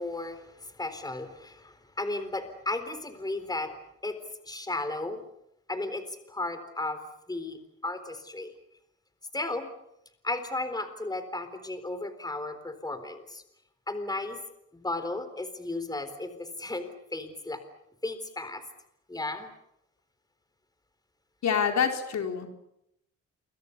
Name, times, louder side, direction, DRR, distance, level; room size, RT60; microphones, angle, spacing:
voice 1, 0.0-3.7 4.0-4.2 4.4-5.2 5.7-7.0 7.3-8.5 9.3-9.7 10.2-13.4 13.9-14.4 14.7-17.6 18.0-18.6 19.1-19.5, left 2 dB, 15° left, 10 dB, 3.9 m, -34 dB
voice 2, 21.4-22.5, left 7 dB, 60° left, 4 dB, 4.4 m, -26 dB
28.5 x 24.0 x 6.9 m, 0.79 s
cardioid pair, 90°, 30 cm